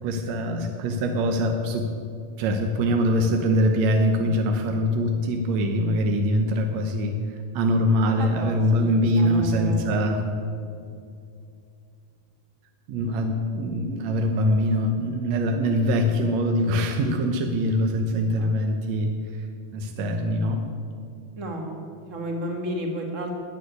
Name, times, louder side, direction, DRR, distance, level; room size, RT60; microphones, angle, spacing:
voice 1, 0.0-1.9 2.4-10.2 12.9-19.5 19.7-20.6, equal, 70° right, 4 dB, 1.8 m, -23 dB
voice 2, 8.2-9.9 18.4-18.5 21.4-23.3, equal, 30° right, 2 dB, 1.6 m, -32 dB
13.5 x 9.3 x 9.5 m, 2.5 s
omnidirectional pair, 4.1 m